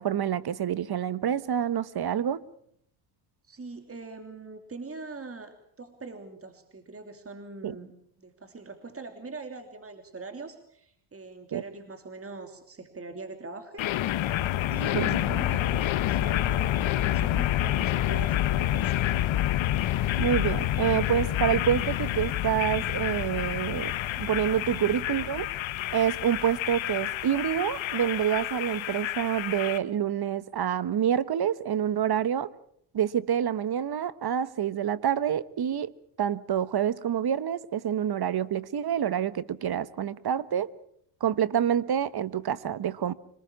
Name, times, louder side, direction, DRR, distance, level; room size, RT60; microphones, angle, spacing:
voice 1, 0.0-2.4 7.6-7.8 11.5-11.6 14.9-15.2 20.2-23.9 24.2-25.5 25.9-32.5 32.9-35.9 36.2-40.7 41.2-43.1, right 9 dB, 50° right, 1.3 m, -27 dB
voice 2, 3.5-7.9 8.2-13.8 14.7-19.0, right 3 dB, 25° right, 3.0 m, -42 dB
sound 1, 13.8-29.8, left 13 dB, 65° left, 1.3 m, -28 dB
26.0 x 20.0 x 7.2 m
cardioid pair, 75°, 50 cm